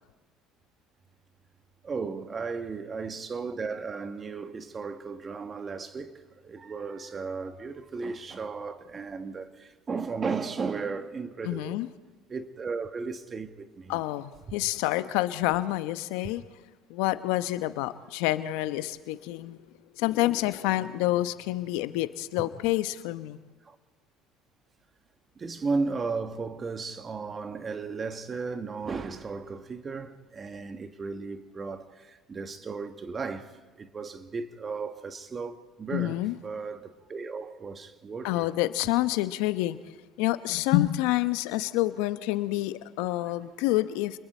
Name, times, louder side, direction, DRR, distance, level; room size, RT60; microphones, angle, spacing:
voice 1, 1.8-11.8 12.3-14.0 14.5-14.6 22.4-22.5 23.6-23.8 25.3-38.5, right 4 dB, 30° right, 1.6 m, -35 dB
voice 2, 11.4-11.9 13.9-16.4 16.9-19.6 20.0-23.4 35.9-36.4 38.2-39.8 40.2-44.2, left 16 dB, 75° left, 0.9 m, -28 dB
29.0 x 21.0 x 4.4 m
supercardioid pair, 80°, 0 cm